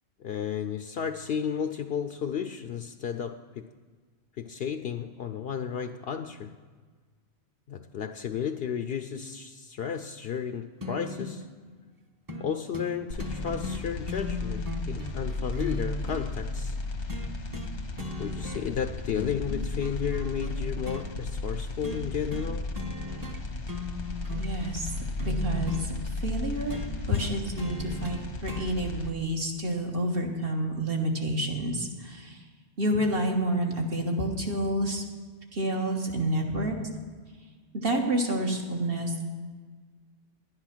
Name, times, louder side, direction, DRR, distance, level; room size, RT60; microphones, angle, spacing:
voice 1, 0.2-3.7 4.4-6.5 7.7-11.4 12.4-16.8 18.2-22.7 27.1-27.3, left 8 dB, 65° left, 7 dB, 0.8 m, -33 dB
sound 1, 10.8-11.4 12.3-12.5 12.7-12.9 13.2-16.3 17.1-17.7 18.0-18.8 19.2-21.0 21.8-22.0 22.3-22.5 22.8-23.4 23.7-25.9 26.7-28.7 29.7-29.8, left 2 dB, 20° right, 0.9 m, -38 dB
sound 2, 13.1-29.1, left 2 dB, 90° left, 1.5 m, -34 dB
voice 2, 24.4-24.9 25.2-25.9 26.2-26.8 27.1-32.4 32.8-35.1 35.5-36.8 37.7-39.3, right 1 dB, 55° right, 0 dB, 1.8 m, -29 dB
11.0 x 10.5 x 6.0 m, 1.5 s
omnidirectional pair, 1.1 m